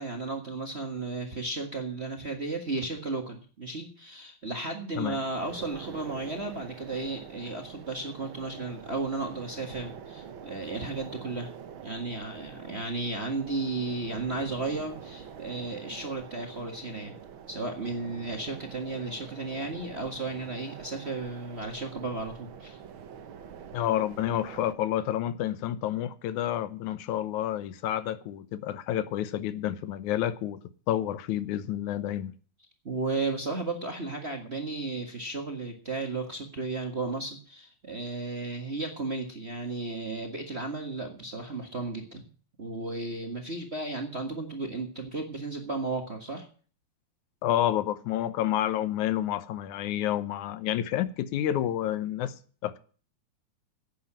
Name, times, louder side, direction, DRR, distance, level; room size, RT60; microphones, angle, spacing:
voice 1, 0.0-11.5 11.8-17.2 17.5-22.8 32.8-42.2 42.6-46.4, right 3 dB, 30° right, 1.2 m, -34 dB
sound 1, 5.2-24.8, right 8 dB, 60° right, 1.5 m, -45 dB
voice 2, 23.7-30.6 30.9-32.3 47.4-52.4 52.6-52.8, left 11 dB, 90° left, 2.3 m, -29 dB
11.0 x 8.8 x 8.6 m
omnidirectional pair, 3.3 m